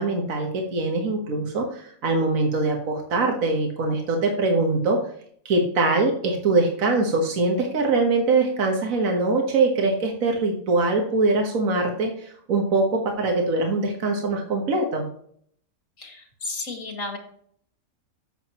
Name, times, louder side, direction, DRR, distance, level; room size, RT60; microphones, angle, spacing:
voice 1, 0.0-5.0 5.4-15.0, right 3 dB, 70° right, 2 dB, 1.7 m, -23 dB
voice 2, 16.0-17.2, left 3 dB, 65° left, 3 dB, 2.3 m, -33 dB
12.0 x 7.4 x 3.0 m, 0.63 s
omnidirectional pair, 1.5 m